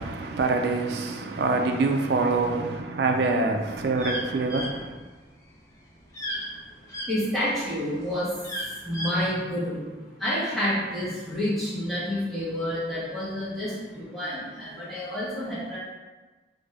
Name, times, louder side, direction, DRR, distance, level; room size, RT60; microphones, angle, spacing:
voice 1, 0.0-4.9, right 3 dB, 65° right, 0.4 m, -25 dB
sound 1, 3.2-7.1 7.6-9.2, equal, 20° left, 0.5 m, -34 dB
voice 2, 7.1-8.4 8.8-15.8, left 1 dB, ahead, 1.1 m, -29 dB
3.4 x 2.5 x 3.3 m
head